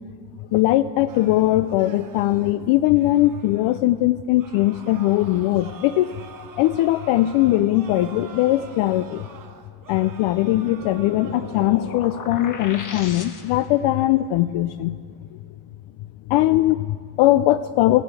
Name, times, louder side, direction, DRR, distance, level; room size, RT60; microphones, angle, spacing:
voice 1, 0.5-6.2 6.6-9.3 9.9-15.0 15.3-15.4 16.3-18.0, left 15 dB, 75° left, 12 dB, 0.5 m, -20 dB
sound 1, 1.1-3.8 4.4-12.2 12.6-13.1, right 5 dB, 40° right, 1.5 m, -45 dB
sound 2, 10.3-13.8, left 4 dB, 40° left, 1.5 m, -36 dB
15.0 x 9.1 x 8.2 m, 2.2 s
cardioid pair, 100°, 49 cm